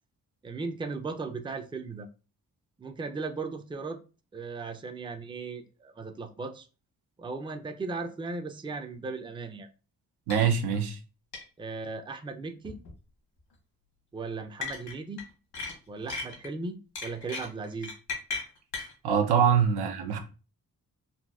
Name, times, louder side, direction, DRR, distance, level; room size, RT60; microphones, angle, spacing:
voice 1, 0.4-2.1 2.8-4.0 4.3-6.7 7.2-9.7 11.6-12.8 14.1-15.2 15.9-17.9, right 4 dB, 15° right, 0.4 m, -37 dB
sound 1, 10.3-10.5 10.7-10.8 11.3-11.4 12.6-12.9 14.6-15.2 15.5-16.5 17.0-18.9, left 4 dB, 75° left, 1.5 m, -36 dB
voice 2, 10.3-11.0 19.0-20.2, right 7 dB, 85° right, 0.6 m, -24 dB
4.1 x 2.2 x 2.3 m
cardioid pair, 55°, 38 cm